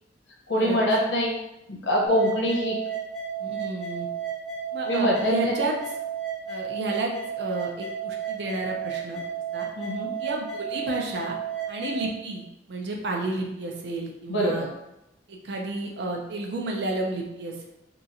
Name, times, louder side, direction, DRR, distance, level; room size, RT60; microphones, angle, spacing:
voice 1, 0.5-1.3 1.7-2.8 4.9-5.5 9.8-10.1 14.3-14.7, equal, 70° left, -2 dB, 0.7 m, -24 dB
sound 1, 2.1-12.1, right 7 dB, ahead, 0.5 m, -33 dB
voice 2, 3.4-4.1 4.7-5.8 6.5-9.2 9.5-9.7 10.2-11.4 11.7-12.4 12.7-14.7 15.3-17.6, right 2 dB, 65° right, 1 dB, 0.5 m, -31 dB
2.9 x 2.4 x 2.5 m, 0.89 s
head